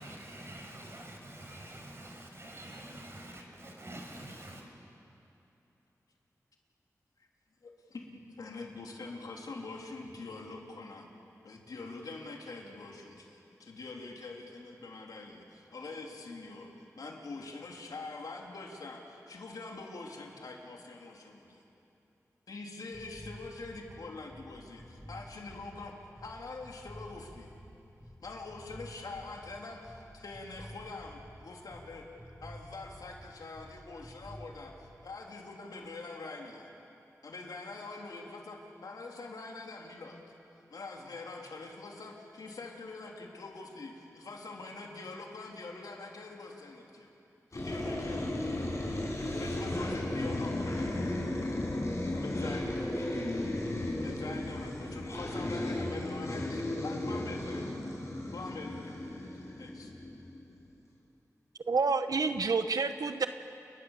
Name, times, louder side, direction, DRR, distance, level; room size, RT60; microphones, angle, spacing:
voice 1, 0.0-4.6, right 1 dB, 45° right, 1 dB, 6.2 m, -46 dB
voice 2, 7.6-11.1 11.4-21.6 22.5-27.5 28.2-32.1 32.4-36.7 37.2-40.2 40.7-47.1 47.5-48.6 49.3-51.0 52.1-52.9 54.0-57.8 58.3-59.2 59.6-59.9, left 3 dB, 90° left, 0 dB, 3.4 m, -44 dB
sound 1, 22.9-34.8, equal, 5° right, 6.5 m, -50 dB
sound 2, 47.5-60.4, left 1 dB, 50° left, 6.3 m, -35 dB
voice 3, 61.7-63.3, right 4 dB, 75° right, 9 dB, 0.9 m, -28 dB
29.5 x 22.5 x 7.4 m, 2.9 s
cardioid pair, 50°, 6 cm